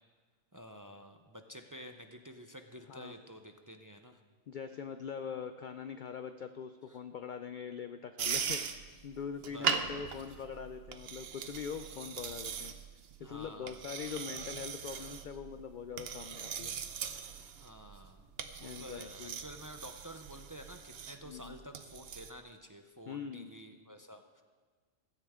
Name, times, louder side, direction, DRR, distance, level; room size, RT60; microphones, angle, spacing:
voice 1, 0.5-4.2 6.9-7.0 9.5-10.1 13.2-13.8 17.6-18.3 18.6-24.4, equal, 25° right, 5 dB, 0.4 m, -50 dB
voice 2, 4.5-12.7 13.2-16.8 18.6-19.4 21.3-21.6 23.1-23.5, left 7 dB, 60° left, 9 dB, 0.5 m, -43 dB
sound 1, 8.2-22.3, right 7 dB, 55° right, 0.9 m, -40 dB
16.0 x 13.5 x 3.7 m, 1.5 s
omnidirectional pair, 1.3 m